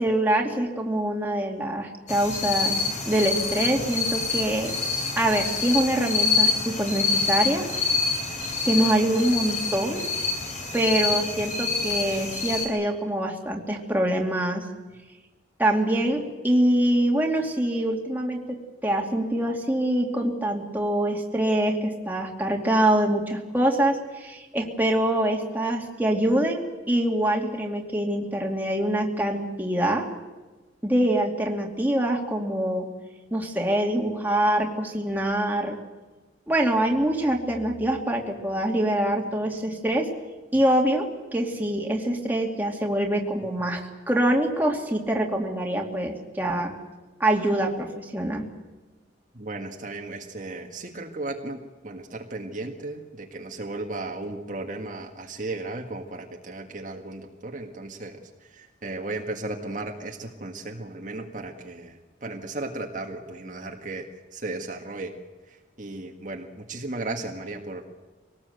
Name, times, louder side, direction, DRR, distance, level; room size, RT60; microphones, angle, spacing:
voice 1, 0.0-4.7 5.2-7.7 8.6-10.1 10.7-14.7 15.6-30.1 30.8-32.9 33.3-35.8 36.5-40.1 40.5-41.1 41.3-43.8 44.1-46.8 47.2-48.5, right 1 dB, 10° right, 0 dB, 2.6 m, -24 dB
sound 1, 2.1-12.7, left 4 dB, 40° left, 4.7 m, -27 dB
voice 2, 49.3-64.1 64.3-65.2 65.5-67.9, right 2 dB, 45° right, 2 dB, 1.8 m, -35 dB
24.0 x 19.0 x 8.1 m, 1.2 s
head